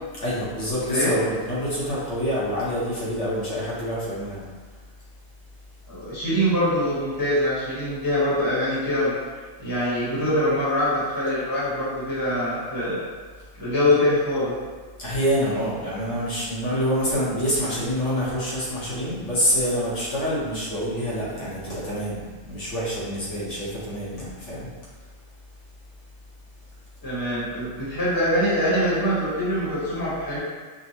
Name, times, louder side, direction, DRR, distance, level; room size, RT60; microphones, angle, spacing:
voice 1, 0.2-4.4 15.0-22.2 22.5-24.7, equal, 70° left, -9 dB, 1.4 m, -26 dB
voice 2, 5.9-9.1 9.6-13.0 13.5-14.5 27.0-30.4, left 1 dB, 15° left, -10 dB, 1.2 m, -23 dB
5.2 x 2.2 x 2.8 m, 1.5 s
omnidirectional pair, 1.3 m